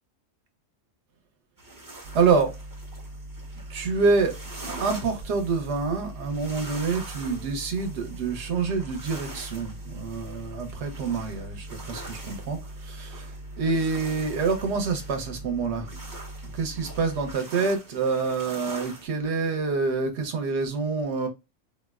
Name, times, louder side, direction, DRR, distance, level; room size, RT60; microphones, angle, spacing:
sound 1, 1.6-19.1, right 2 dB, 20° right, 0.6 m, -44 dB
sound 2, 2.0-17.3, right 1 dB, 80° right, 0.3 m, -41 dB
voice 1, 2.1-2.5 3.7-4.4 4.7-15.9 16.4-21.3, right 4 dB, 65° right, 1.0 m, -27 dB
3.6 x 2.1 x 2.3 m
omnidirectional pair, 1.3 m